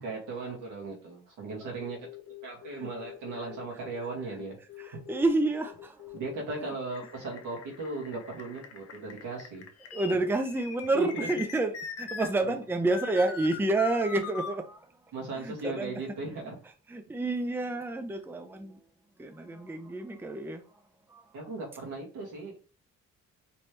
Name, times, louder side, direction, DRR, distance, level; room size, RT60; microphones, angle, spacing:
voice 1, 0.0-2.0 2.4-4.6 4.9-5.0 6.1-9.6 10.9-11.3 12.4-12.5 15.1-16.6 21.3-22.7, right 3 dB, 85° right, 2.0 m, -37 dB
sound 1, 1.6-12.3 12.9-14.6, left 7 dB, 55° left, 0.8 m, -42 dB
voice 2, 4.8-6.0 6.6-6.7 9.9-14.9 15.4-16.0 16.9-18.8 19.2-20.6 21.1-21.2, right 2 dB, 5° right, 0.5 m, -29 dB
4.3 x 3.1 x 3.2 m
cardioid pair, 90°, 30 cm